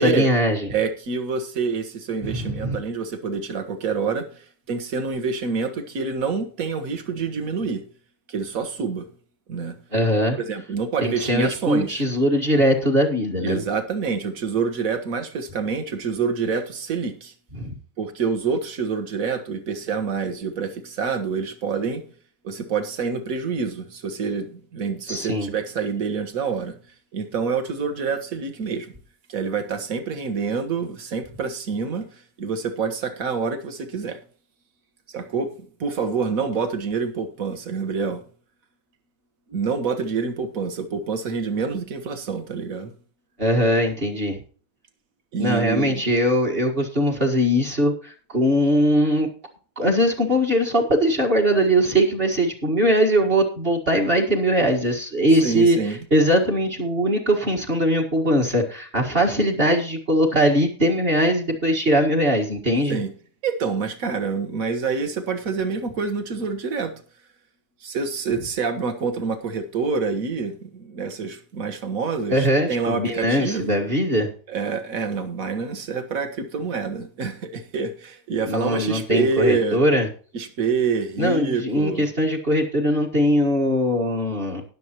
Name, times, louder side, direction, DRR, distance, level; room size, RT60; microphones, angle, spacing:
voice 1, 0.0-0.6 2.2-2.8 9.9-10.4 11.0-13.6 17.6-17.8 25.1-25.5 43.4-44.4 45.4-49.3 49.8-55.8 56.1-63.0 72.3-74.3 78.5-80.1 81.2-84.6, equal, 35° right, 0 dB, 1.8 m, -21 dB
voice 2, 0.7-7.8 8.3-9.1 9.5-9.7 10.4-12.0 13.4-17.3 18.0-22.0 22.4-26.8 27.1-28.9 29.3-34.2 35.1-35.5 35.8-38.2 39.5-42.9 45.3-46.0 55.4-56.0 62.9-63.1 63.4-66.9 67.8-73.8 74.5-79.8 80.3-82.0, right 5 dB, 55° right, 8 dB, 1.7 m, -27 dB
19.0 x 7.1 x 3.0 m, 0.41 s
omnidirectional pair, 1.9 m